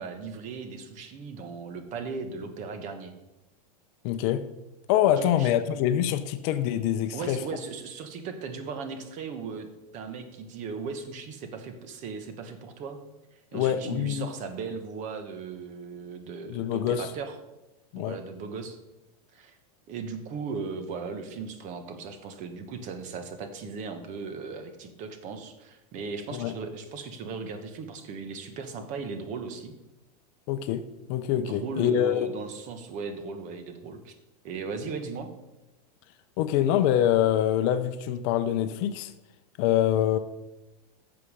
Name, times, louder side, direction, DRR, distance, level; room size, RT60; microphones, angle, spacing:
voice 1, 0.0-3.1 5.2-5.5 7.1-9.7 9.9-13.0 13.3-17.4 18.0-18.8 19.3-19.6 19.9-29.7 31.4-34.1 34.4-35.3, right 5 dB, 35° right, 8 dB, 1.3 m, -37 dB
voice 2, 4.0-4.5 4.9-7.4 13.5-14.3 16.5-17.1 17.9-18.2 26.3-26.5 30.5-32.3 36.4-39.1 39.6-40.2, left 11 dB, 45° left, 11 dB, 0.7 m, -25 dB
11.0 x 7.0 x 4.9 m, 1.0 s
supercardioid pair, 145°, 20 cm